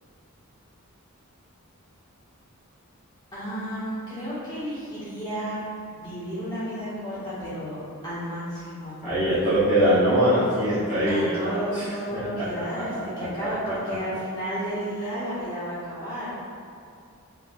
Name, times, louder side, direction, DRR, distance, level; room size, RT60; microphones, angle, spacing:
voice 1, 3.3-5.6 5.9-9.0 11.0-16.3, equal, 20° left, -12 dB, 1.4 m, -32 dB
voice 2, 9.0-12.4 12.7-12.8 13.2-13.7, equal, 35° left, -14 dB, 1.2 m, -23 dB
5.0 x 3.5 x 2.4 m, 2.4 s
head